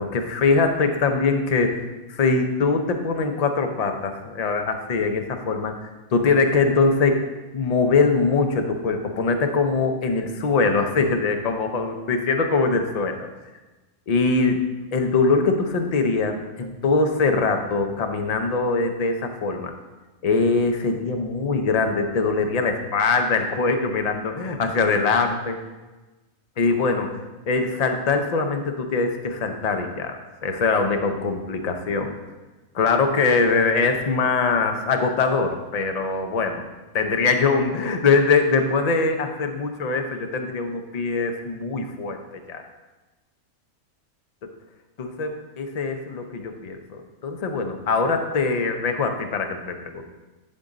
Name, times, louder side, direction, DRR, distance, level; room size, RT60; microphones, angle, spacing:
voice 1, 0.0-7.2 7.5-13.3 14.1-14.6 14.9-19.7 20.2-25.6 26.6-27.2 27.5-32.2 32.7-36.6 36.9-42.6 45.0-50.0, left 4 dB, 50° left, 5 dB, 0.4 m, -22 dB
11.0 x 3.8 x 3.9 m, 1.2 s
omnidirectional pair, 1.5 m